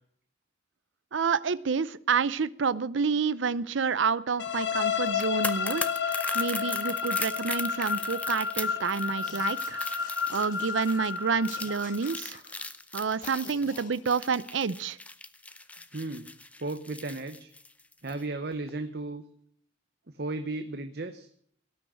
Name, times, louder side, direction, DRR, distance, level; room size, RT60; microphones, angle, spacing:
voice 1, 1.1-9.8 10.3-12.4 12.9-15.0, right 5 dB, 80° right, 18 dB, 0.6 m, -29 dB
sound 1, 4.4-12.2, left 6 dB, 65° left, 1.0 m, -31 dB
sound 2, 5.1-18.2 18.5-18.7, left 2 dB, 5° left, 0.6 m, -39 dB
sound 3, 9.2-11.1 11.5-12.7 13.2-14.0, left 4 dB, 45° left, 1.7 m, -48 dB
voice 2, 15.9-16.3 16.6-17.5 18.0-19.2 20.1-21.3, right 2 dB, 55° right, 8 dB, 0.9 m, -35 dB
17.5 x 6.3 x 9.9 m, 0.62 s
head